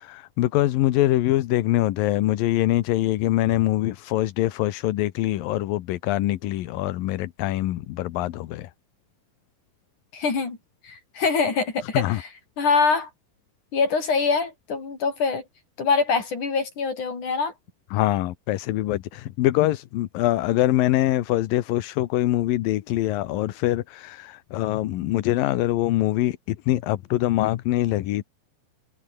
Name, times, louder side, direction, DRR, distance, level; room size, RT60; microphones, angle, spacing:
voice 1, 0.0-8.7 11.9-12.2 17.9-28.2, left 15 dB, 75° left, 2.8 m, -24 dB
voice 2, 10.1-10.6 10.8-12.3 12.6-13.1 13.7-15.4 15.8-17.5, left 4 dB, 55° left, 6.9 m, -24 dB
omnidirectional pair, 4.1 m